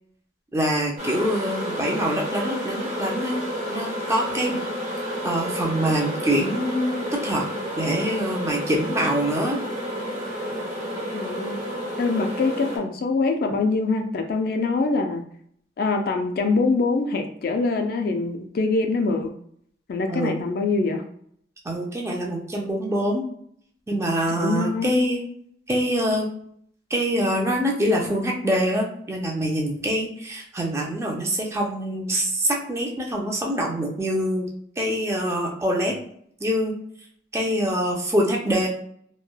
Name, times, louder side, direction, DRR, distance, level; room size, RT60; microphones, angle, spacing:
voice 1, 0.5-4.6 5.2-7.5 7.8-9.6 20.1-20.4 21.7-23.2 23.9-25.2 25.7-26.3 26.9-34.5 34.8-35.9 36.4-36.7 37.3-38.7, equal, 15° right, -1 dB, 0.4 m, -25 dB
sound 1, 1.0-12.8, equal, 40° right, 1.1 m, -30 dB
voice 2, 11.1-11.6 12.0-15.2 15.8-19.3 19.9-21.0 24.3-25.0, left 3 dB, 55° left, 5 dB, 0.3 m, -24 dB
3.1 x 2.1 x 2.2 m, 0.65 s
head